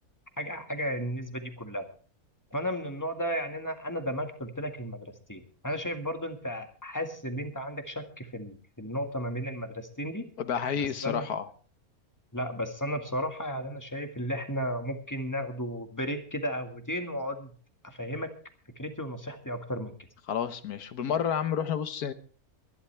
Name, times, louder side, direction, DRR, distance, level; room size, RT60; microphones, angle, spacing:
voice 1, 0.4-1.9 2.5-10.2 11.0-11.3 12.3-17.5 17.8-18.3 18.8-19.9, equal, 10° left, 5 dB, 1.8 m, -34 dB
voice 2, 10.4-11.5 20.3-22.1, left 8 dB, 80° left, 11 dB, 1.5 m, -30 dB
22.5 x 11.5 x 3.4 m, 0.41 s
omnidirectional pair, 1.6 m